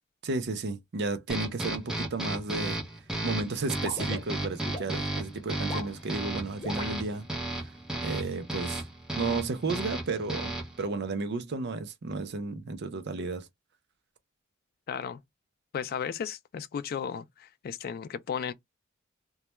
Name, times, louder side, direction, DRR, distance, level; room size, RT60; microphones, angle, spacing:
voice 1, 0.2-2.8 3.2-7.3 8.0-8.8 9.2-13.5, right 3 dB, 55° right, 0.5 m, -33 dB
sound 1, 1.3-10.8, right 1 dB, 5° right, 0.6 m, -34 dB
sound 2, 3.8-4.9 5.5-5.9 6.6-7.0, left 3 dB, 25° left, 1.0 m, -39 dB
voice 2, 14.9-15.2 15.7-18.5, left 7 dB, 50° left, 0.3 m, -35 dB
2.2 x 2.1 x 2.9 m
head